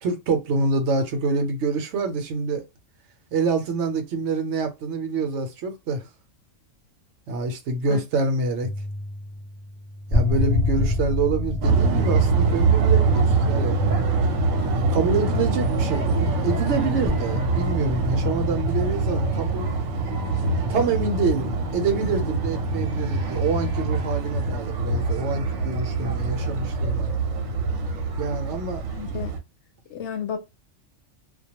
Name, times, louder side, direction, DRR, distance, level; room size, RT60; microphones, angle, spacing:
voice 1, 0.0-2.6 3.3-6.1 7.3-8.7 10.1-13.8 14.8-19.7 20.7-27.1 28.2-28.8, right 4 dB, 65° right, 0.9 m, -26 dB
sound 1, 8.6-16.6 17.0-19.7 20.5-20.8, left 2 dB, 45° left, 0.3 m, -29 dB
sound 2, 11.6-29.4, right 3 dB, 85° right, 1.0 m, -24 dB
voice 2, 28.9-29.4 29.9-30.4, left 7 dB, 70° left, 0.8 m, -32 dB
2.2 x 2.2 x 2.8 m
omnidirectional pair, 1.3 m